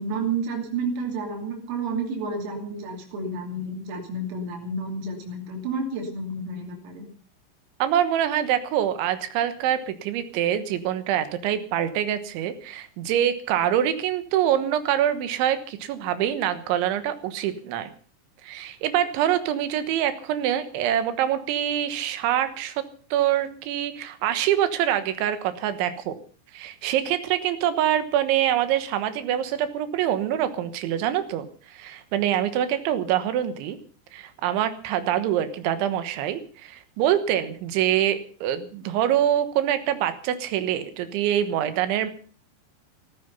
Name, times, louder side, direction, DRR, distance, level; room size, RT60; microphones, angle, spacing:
voice 1, 0.0-7.1, right 3 dB, 90° right, 1 dB, 5.6 m, -30 dB
voice 2, 7.8-17.9 18.4-22.8 23.1-26.2 26.5-33.8 34.1-42.1, right 11 dB, 70° right, 11 dB, 3.4 m, -25 dB
16.5 x 14.0 x 5.5 m, 0.42 s
omnidirectional pair, 6.0 m